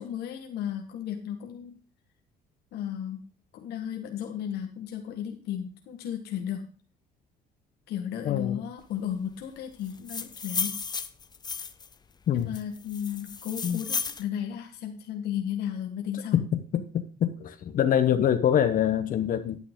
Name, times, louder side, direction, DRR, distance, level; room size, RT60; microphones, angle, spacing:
voice 1, 0.0-1.8 2.7-3.3 3.5-6.6 7.9-10.8 12.3-16.4, left 9 dB, 75° left, 1.4 m, -34 dB
voice 2, 8.2-8.6 12.3-12.6 13.6-13.8 16.3-19.6, left 9 dB, 55° left, 1.0 m, -25 dB
sound 1, 9.9-11.9 12.5-14.2, left 5 dB, 25° left, 0.7 m, -33 dB
9.7 x 8.5 x 3.6 m
cardioid pair, 110°, 17 cm